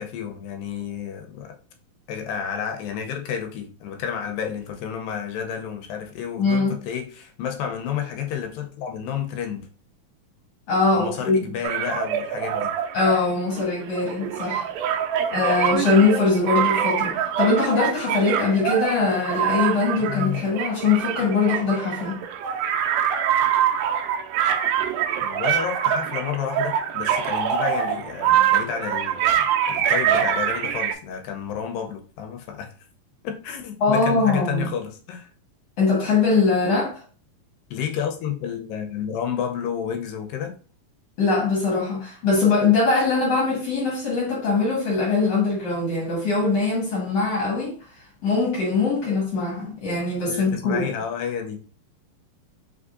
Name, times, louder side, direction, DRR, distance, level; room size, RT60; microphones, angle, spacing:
voice 1, 0.0-1.6 2.1-9.7 10.9-12.7 20.1-20.5 25.2-32.7 33.2-35.3 37.7-40.5 50.3-51.6, left 8 dB, 85° left, 2.4 m, -30 dB
voice 2, 6.4-6.8 10.7-11.5 12.9-14.7 15.3-22.2 33.8-34.6 35.8-36.9 41.2-47.8 48.2-50.9, left 4 dB, 55° left, 2.1 m, -22 dB
sound 1, 11.6-31.0, right 9 dB, 90° right, 2.4 m, -24 dB
5.2 x 3.6 x 2.5 m
omnidirectional pair, 4.0 m